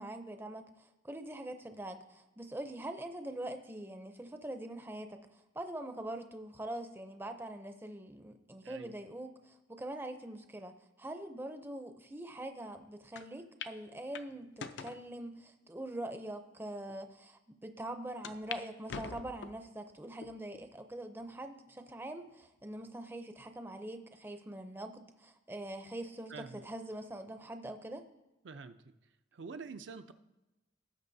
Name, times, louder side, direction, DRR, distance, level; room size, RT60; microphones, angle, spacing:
voice 1, 0.0-28.0, right 1 dB, 10° right, 7 dB, 0.5 m, -43 dB
sound 1, 13.2-13.3 13.6-13.8 14.1-15.0 15.7-15.8 16.5-16.6 16.9-17.0 18.2-18.6 18.9-19.7 20.2-20.7 21.2-21.3 22.4-22.9, left 6 dB, 70° left, 0.5 m, -44 dB
voice 2, 26.3-26.6 28.4-28.8 29.3-30.1, right 4 dB, 75° right, 8 dB, 0.5 m, -46 dB
17.5 x 6.7 x 2.7 m, 1.0 s
head